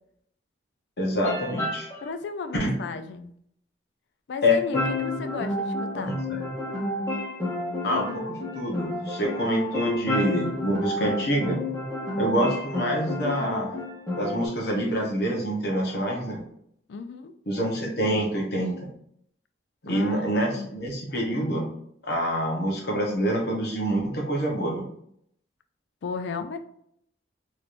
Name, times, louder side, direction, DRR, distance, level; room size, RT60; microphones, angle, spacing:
voice 1, 1.0-1.9 2.6-2.7 4.4-4.6 5.9-6.4 7.8-11.6 12.2-13.8 14.2-16.4 17.5-18.7 19.8-21.7 22.0-24.8, equal, 60° left, -1 dB, 0.9 m, -26 dB
sound 1, 1.2-2.1 4.7-14.5, left 1 dB, 15° left, 0.8 m, -30 dB
voice 2, 2.0-3.3 4.3-6.2 16.9-17.3 19.9-20.3 20.5-20.7 26.0-26.6, left 4 dB, 75° left, 9 dB, 0.3 m, -34 dB
3.2 x 3.0 x 2.5 m, 0.70 s
head